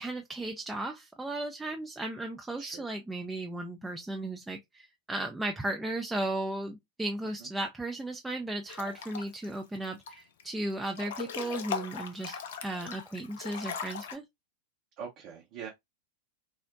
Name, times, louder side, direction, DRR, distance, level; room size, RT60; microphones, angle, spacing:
voice 1, 0.0-14.2, right 1 dB, 10° right, 0.4 m, -35 dB
voice 2, 2.6-2.9 7.4-7.5 15.0-15.7, right 7 dB, 45° right, 0.7 m, -42 dB
Breathing / Bathtub (filling or washing) / Splash splatter, 8.7-9.5 9.8-10.5 10.9-14.2, left 6 dB, 60° left, 0.4 m, -39 dB
3.8 x 2.0 x 2.5 m
figure-of-eight pair, 90°, 0 cm